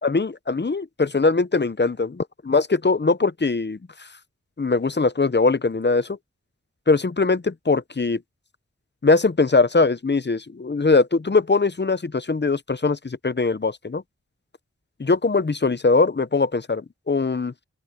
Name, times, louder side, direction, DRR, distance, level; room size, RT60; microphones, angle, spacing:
voice 1, 0.0-3.8 4.6-6.2 6.9-8.2 9.0-14.0 15.0-17.5, left 3 dB, 40° left, 0.7 m, -21 dB
open air
wide cardioid pair, 50°, 29 cm